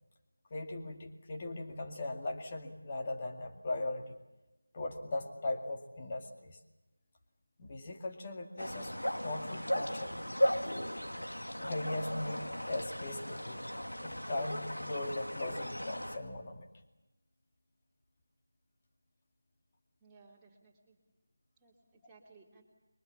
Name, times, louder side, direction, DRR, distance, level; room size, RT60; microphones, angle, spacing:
voice 1, 0.5-4.2 4.7-6.6 7.6-8.9 9.2-10.2 11.6-13.6 14.0-16.7, left 2 dB, 25° left, 3 dB, 2.3 m, -39 dB
sound 1, 8.6-16.2, equal, 80° left, 2.4 m, -36 dB
voice 2, 20.0-21.0 21.6-22.6, right 4 dB, 5° right, -6 dB, 3.2 m, -61 dB
28.5 x 23.5 x 7.3 m, 1.0 s
figure-of-eight pair, 165°, 0 cm